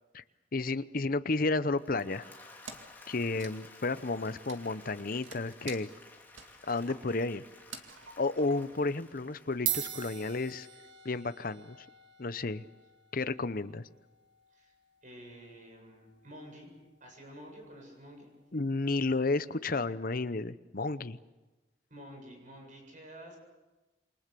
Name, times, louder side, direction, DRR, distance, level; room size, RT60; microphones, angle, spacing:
voice 1, 0.5-2.3 3.1-5.9 6.7-7.4 8.2-10.7 11.0-11.8 12.2-12.6 13.1-13.9 18.5-21.2, left 3 dB, 45° left, 13 dB, 0.8 m, -32 dB
Applause / Crowd, 1.6-10.8, left 2 dB, 10° left, 2.9 m, -55 dB
Wood, 2.7-3.0 3.3-8.9, right 5 dB, 80° right, 2.3 m, -50 dB
sound 1, 9.1-9.2 9.5-18.2, right 11 dB, 65° right, 1.9 m, -43 dB
voice 2, 15.0-16.7 17.0-18.3 21.9-23.4, equal, 40° right, 2 dB, 7.6 m, -50 dB
28.0 x 24.0 x 6.9 m, 1.1 s
head